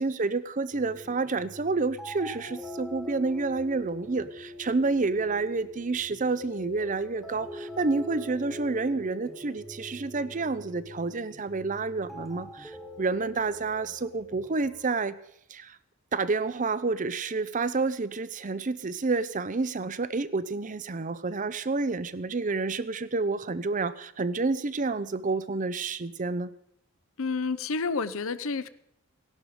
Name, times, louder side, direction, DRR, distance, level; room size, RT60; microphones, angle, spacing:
voice 1, 0.0-15.1 15.5-15.8 16.1-26.5, right 3 dB, 35° right, 15 dB, 0.6 m, -29 dB
sound 1, 0.7-14.7, left 1 dB, ahead, 1.3 m, -43 dB
voice 2, 27.2-28.7, left 4 dB, 60° left, 16 dB, 0.7 m, -29 dB
17.0 x 11.5 x 5.0 m, 0.73 s
head